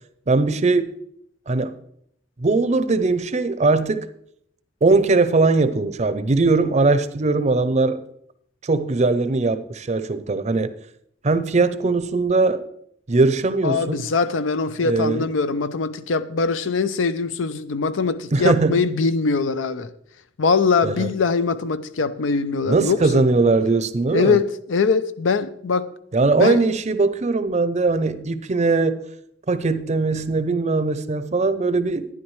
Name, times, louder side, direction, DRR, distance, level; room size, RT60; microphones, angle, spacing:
voice 1, 0.3-1.0 1.5-1.7 2.4-4.1 4.8-8.0 8.6-10.7 11.2-12.6 13.1-14.0 14.8-15.2 18.3-18.9 20.8-21.1 22.7-24.4 26.1-29.0 29.5-32.1, right 3 dB, 35° right, 0.6 m, -20 dB
voice 2, 13.6-19.9 20.4-23.2 24.1-25.9 26.4-26.6, left 4 dB, 90° left, 0.6 m, -22 dB
11.5 x 10.5 x 3.2 m
head